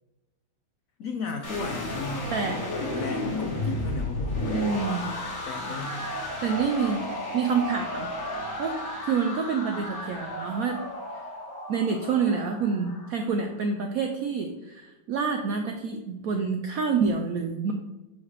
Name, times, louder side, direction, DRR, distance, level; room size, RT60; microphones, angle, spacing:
voice 1, 1.0-4.6 5.5-6.1, left 4 dB, 80° left, 4 dB, 0.7 m, -35 dB
sound 1, 1.4-13.5, left 1 dB, 65° left, 1.9 m, -33 dB
voice 2, 4.5-5.1 6.4-7.0 7.3-8.1 8.6-10.8 11.7-17.7, right 5 dB, 80° right, 4 dB, 0.8 m, -27 dB
7.0 x 4.7 x 3.2 m, 1.1 s
omnidirectional pair, 2.1 m